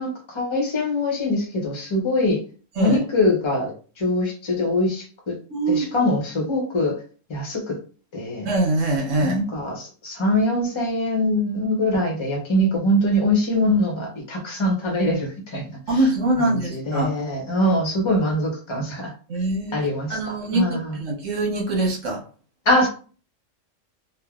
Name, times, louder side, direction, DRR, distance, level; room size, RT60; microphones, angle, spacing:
voice 1, 0.0-2.4 2.8-5.4 5.7-7.0 7.3-7.8 8.1-8.5 9.2-15.6 16.4-19.1 19.7-21.0 22.6-22.9, left 1 dB, 30° left, 0 dB, 0.7 m, -23 dB
voice 2, 5.5-5.9 8.4-9.4 15.9-17.2 19.3-19.8 20.1-22.2, right 2 dB, 80° right, -2 dB, 1.3 m, -23 dB
3.2 x 2.1 x 2.4 m, 0.39 s
omnidirectional pair, 1.3 m